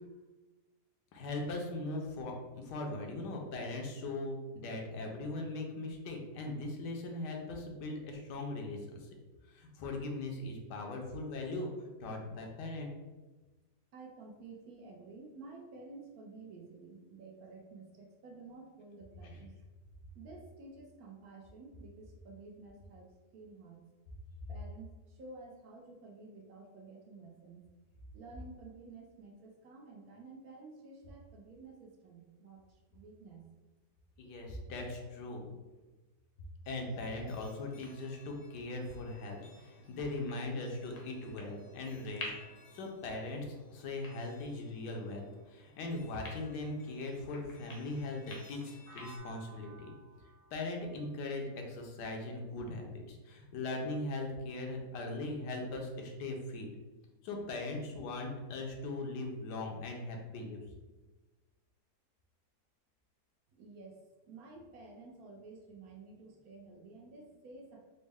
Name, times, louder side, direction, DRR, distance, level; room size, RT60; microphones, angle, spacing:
voice 1, 1.1-9.1 9.5-12.9 19.3-19.4 34.2-35.5 36.7-42.3 42.7-49.9 50.5-56.7 57.2-60.6, left 2 dB, 80° left, 1 dB, 1.3 m, -40 dB
voice 2, 13.9-19.5 20.1-23.1 23.3-23.8 24.5-27.6 28.1-33.5 63.6-64.0 64.2-67.8, right 3 dB, 70° right, 0 dB, 1.0 m, -52 dB
sound 1, 36.6-49.2, left 2 dB, 60° left, 0.9 m, -53 dB
sound 2, 48.9-52.7, right 2 dB, 45° right, 1.2 m, -57 dB
4.1 x 2.1 x 3.4 m, 1.2 s
omnidirectional pair, 1.8 m